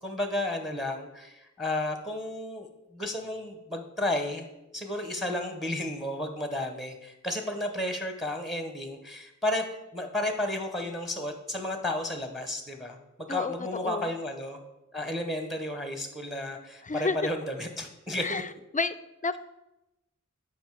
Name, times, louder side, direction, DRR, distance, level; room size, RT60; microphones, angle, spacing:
voice 1, 0.0-9.7 9.9-14.6 14.9-18.4, left 1 dB, ahead, 5 dB, 0.9 m, -32 dB
voice 2, 13.3-14.1 16.8-17.2 18.2-18.5 18.7-18.9 19.2-19.4, left 4 dB, 25° left, 14 dB, 0.4 m, -30 dB
7.9 x 4.9 x 4.7 m, 0.93 s
wide cardioid pair, 50°, 31 cm